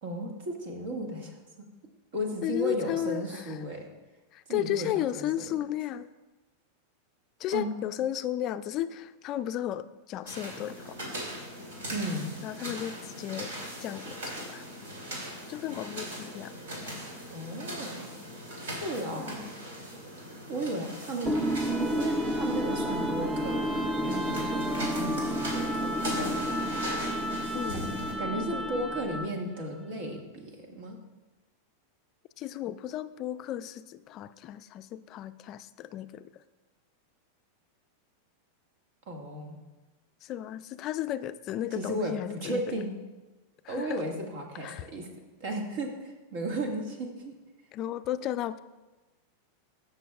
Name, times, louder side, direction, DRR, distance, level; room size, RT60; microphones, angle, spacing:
voice 1, 0.0-1.7 2.1-3.9 4.5-5.3 7.5-7.7 11.9-12.3 17.3-18.1 18.8-19.4 20.5-25.9 27.7-27.8 28.2-31.0 39.1-39.6 41.7-42.9 43.7-45.1 45.4-47.4, right 1 dB, 65° right, 2 dB, 1.8 m, -35 dB
voice 2, 2.4-3.6 4.3-6.1 7.4-11.0 12.4-13.5 13.8-14.6 15.5-16.5 19.1-19.5 27.5-28.2 28.5-28.7 32.4-36.3 40.2-42.8 43.6-44.0 44.6-44.9 47.7-48.6, left 12 dB, 40° left, 12 dB, 0.3 m, -34 dB
sound 1, 10.3-28.1, equal, 85° right, 2.8 m, -40 dB
sound 2, 21.3-29.4, equal, 10° right, 0.6 m, -30 dB
15.0 x 6.6 x 2.4 m, 1.2 s
hypercardioid pair, 125°, 0 cm